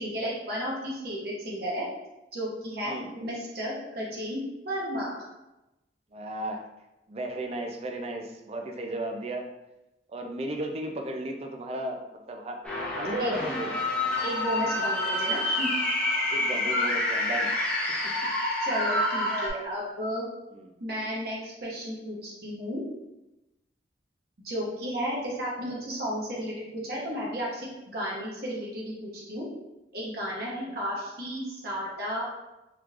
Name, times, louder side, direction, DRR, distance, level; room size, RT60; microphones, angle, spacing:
voice 1, 0.0-1.9 2.3-5.2 13.2-13.3 14.2-15.7 18.0-18.1 18.6-20.2 20.8-22.8 24.4-29.5 29.9-32.3, equal, 60° right, -5 dB, 1.0 m, -33 dB
voice 2, 6.1-6.6 7.1-9.5 10.1-13.7 16.3-17.5 20.5-20.7, right 1 dB, 35° right, 3 dB, 0.4 m, -34 dB
sound 1, 12.6-19.5, left 1 dB, 5° left, 0.7 m, -28 dB
3.6 x 3.0 x 2.4 m, 0.96 s
head